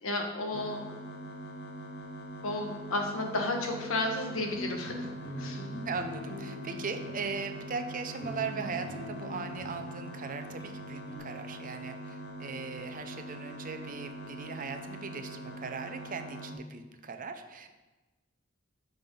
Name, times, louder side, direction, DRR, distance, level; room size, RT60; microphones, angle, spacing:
voice 1, 0.0-0.8 2.4-5.1 5.4-5.6 6.7-7.0, left 2 dB, 80° left, 2 dB, 1.2 m, -33 dB
sound 1, 0.5-16.5, right 1 dB, 55° left, 1.2 m, -43 dB
sound 2, 4.3-10.7 11.1-11.2, equal, 20° left, 1.2 m, -43 dB
voice 2, 5.8-17.7, right 5 dB, 45° right, 7 dB, 0.6 m, -39 dB
5.9 x 5.4 x 5.3 m, 1.2 s
head